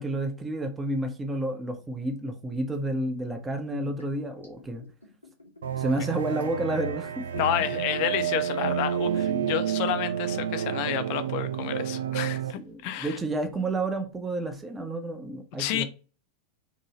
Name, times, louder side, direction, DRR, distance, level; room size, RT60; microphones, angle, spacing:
voice 1, 0.0-4.8 5.8-7.2 9.0-9.5 12.5-15.8, right 1 dB, 15° right, 0.5 m, -31 dB
Liquid, 1.7-7.9 8.1-8.2, left 3 dB, 85° left, 1.0 m, -52 dB
sound 1, 5.6-12.5, right 9 dB, 65° right, 0.3 m, -30 dB
voice 2, 7.3-13.2 15.6-15.8, left 11 dB, 45° left, 0.4 m, -30 dB
2.8 x 2.6 x 2.8 m
figure-of-eight pair, 90°, 0 cm